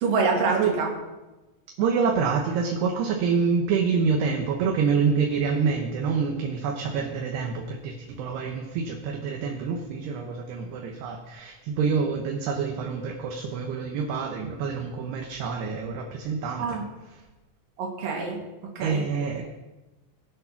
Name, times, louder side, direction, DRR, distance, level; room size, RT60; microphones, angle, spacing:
voice 1, 0.0-0.9 16.6-16.8 17.8-18.4 18.8-19.0, right 4 dB, 55° right, 0 dB, 3.9 m, -25 dB
voice 2, 1.8-16.8 17.1-17.2 18.8-19.5, right 5 dB, 75° right, 1 dB, 3.1 m, -27 dB
22.0 x 7.5 x 5.8 m, 1.1 s
omnidirectional pair, 5.0 m